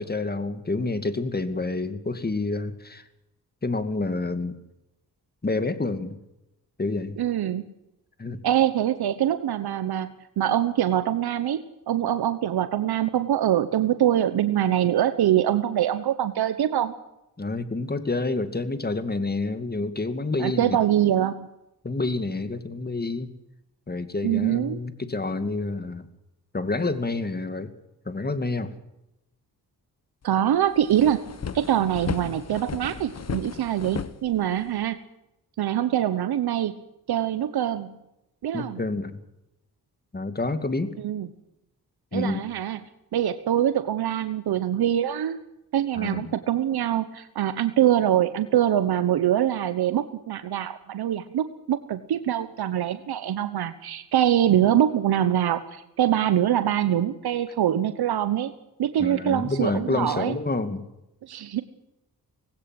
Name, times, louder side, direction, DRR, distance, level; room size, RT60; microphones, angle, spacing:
voice 1, 0.0-3.0 3.6-4.6 5.4-6.2 6.8-7.2 8.2-8.4 17.4-20.8 21.8-23.3 23.9-26.1 26.5-27.7 28.1-28.7 31.8-32.0 32.2-32.3 38.5-39.2 40.1-40.9 42.1-42.4 46.0-46.3 59.0-60.8, left 3 dB, 25° left, 10 dB, 2.3 m, -28 dB
voice 2, 7.2-7.7 8.4-16.9 20.4-21.5 24.2-24.8 30.2-31.2 31.5-35.0 35.6-36.8 37.1-37.9 38.4-38.8 41.0-41.3 42.1-42.8 43.1-45.4 45.7-58.5 58.8-60.4 61.2-61.6, right 11 dB, 80° right, 12 dB, 1.1 m, -24 dB
sound 1, 30.2-30.3 30.6-34.9, left 6 dB, 45° left, 1.3 m, -35 dB
19.5 x 17.0 x 7.8 m, 0.88 s
cardioid pair, 75°, 37 cm